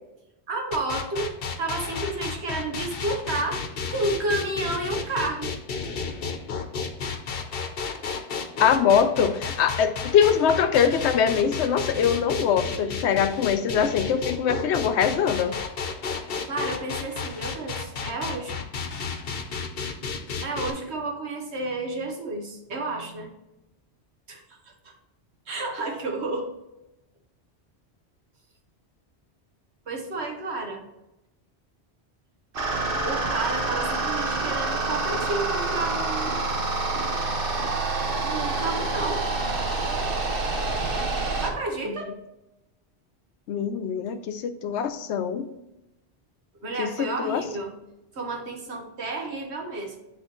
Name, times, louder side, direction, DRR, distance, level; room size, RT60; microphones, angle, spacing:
voice 1, 0.5-5.5 16.5-18.6 20.4-23.3 24.3-24.6 24.8-24.9 25.5-26.5 29.9-30.8 33.0-36.4 38.2-39.2 41.4-42.1 46.6-47.7 48.1-50.0, right 2 dB, 80° right, 2 dB, 1.5 m, -31 dB
sound 1, 0.7-20.7, left 5 dB, 60° left, 0.9 m, -32 dB
voice 2, 8.6-15.6 41.9-42.0 43.5-45.5 46.8-47.4, left 7 dB, 85° left, 10 dB, 0.9 m, -23 dB
sound 2, 32.5-41.5, right 3 dB, 55° right, 1.1 m, -27 dB
9.9 x 3.6 x 3.0 m, 0.93 s
omnidirectional pair, 1.1 m